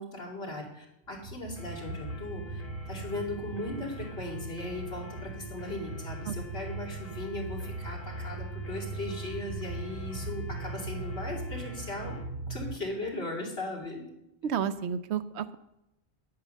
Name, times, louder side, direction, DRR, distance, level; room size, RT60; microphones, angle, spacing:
voice 1, 0.0-2.6 2.9-12.2 12.4-14.0, left 2 dB, 65° left, -2 dB, 2.8 m, -38 dB
sound 1, 1.1-12.8, right 3 dB, 55° right, 0.8 m, -39 dB
sound 2, 1.6-12.3, left 3 dB, 35° left, 1.9 m, -50 dB
voice 2, 14.4-15.6, right 8 dB, 80° right, 13 dB, 0.9 m, -31 dB
8.8 x 8.4 x 6.3 m, 0.86 s
omnidirectional pair, 1.1 m